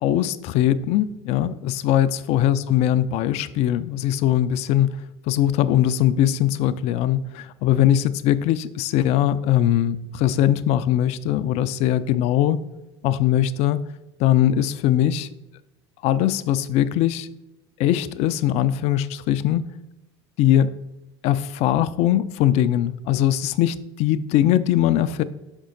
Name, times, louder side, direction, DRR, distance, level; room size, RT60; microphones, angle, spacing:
voice 1, 0.0-5.0 5.3-12.6 13.0-13.8 14.2-15.3 16.0-17.3 17.8-19.7 20.4-20.8 21.2-25.2, left 11 dB, 50° left, 15 dB, 0.4 m, -21 dB
6.1 x 5.3 x 3.8 m, 0.98 s
hypercardioid pair, 80°, 14 cm